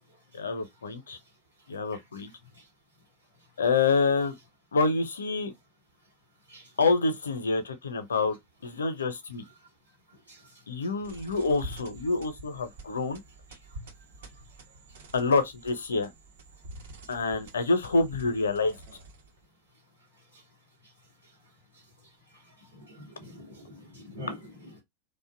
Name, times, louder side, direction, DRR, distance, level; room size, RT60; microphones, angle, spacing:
voice 1, 0.3-1.2 1.7-2.3 3.6-4.3 4.7-5.5 6.8-8.4 8.6-9.4 10.7-13.2 15.1-16.1 17.1-18.8, left 4 dB, 70° left, 0.5 m, -27 dB
sound 1, 11.0-19.4, right 1 dB, 60° right, 0.7 m, -47 dB
voice 2, 23.0-24.8, left 1 dB, 85° right, 1.0 m, -44 dB
2.5 x 2.1 x 2.5 m
figure-of-eight pair, 90°, 0 cm